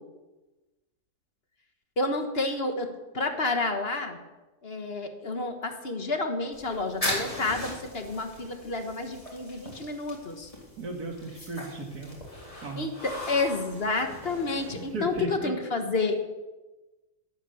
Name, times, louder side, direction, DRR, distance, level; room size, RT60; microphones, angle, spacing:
voice 1, 2.0-4.2 4.6-10.5 12.8-16.2, left 3 dB, 45° left, 6 dB, 1.4 m, -30 dB
sound 1, 6.5-15.2, left 1 dB, 20° left, 3.8 m, -39 dB
voice 2, 10.8-12.1 12.6-12.8 14.7-15.6, right 2 dB, 80° right, 3 dB, 2.6 m, -35 dB
12.5 x 10.0 x 7.0 m, 1.1 s
omnidirectional pair, 1.6 m